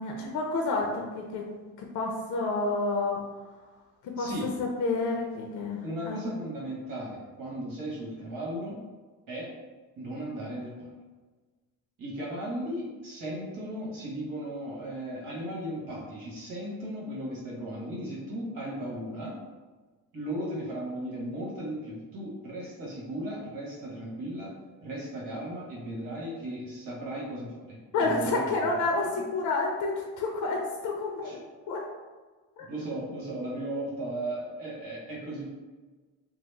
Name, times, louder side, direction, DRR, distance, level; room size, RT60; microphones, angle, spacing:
voice 1, 0.0-1.5 1.8-3.2 4.0-6.2 27.9-31.4 31.7-31.9 32.6-32.7, left 3 dB, 60° left, 0 dB, 0.6 m, -29 dB
voice 2, 5.8-8.8 9.3-9.5 10.0-10.9 12.0-19.3 20.1-24.5 24.8-28.8 31.2-31.4 32.7-35.5, right 1 dB, 70° right, -4 dB, 1.3 m, -36 dB
2.9 x 2.1 x 3.2 m, 1.3 s
cardioid pair, 110°, 34 cm